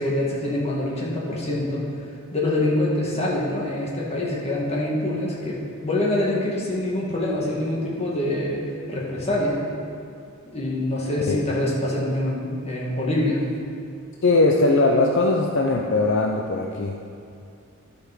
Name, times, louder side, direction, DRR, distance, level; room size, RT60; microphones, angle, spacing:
voice 1, 0.0-1.9 2.3-9.6 10.5-13.4, left 1 dB, 30° left, -5 dB, 2.0 m, -25 dB
voice 2, 14.2-17.1, left 2 dB, 60° left, 0 dB, 0.6 m, -20 dB
11.5 x 5.4 x 6.1 m, 2.5 s
head